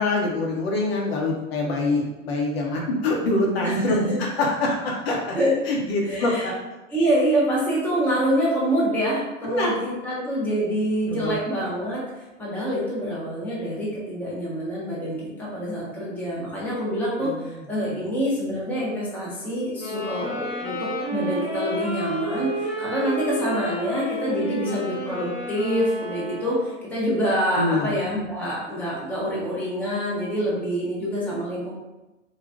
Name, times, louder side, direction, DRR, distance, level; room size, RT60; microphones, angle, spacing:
voice 1, 0.0-5.3 5.7-6.5 9.4-9.7 11.1-11.4 17.2-17.6 27.5-27.9, left 2 dB, 50° left, -1 dB, 1.0 m, -25 dB
voice 2, 3.6-4.2 5.3-5.5 6.0-6.5 6.9-12.0 12.4-31.7, equal, 5° left, -6 dB, 0.9 m, -26 dB
sound 1, 19.8-26.8, right 1 dB, 30° left, 1.3 m, -31 dB
3.9 x 2.3 x 3.5 m, 1.0 s
figure-of-eight pair, 95°, 39 cm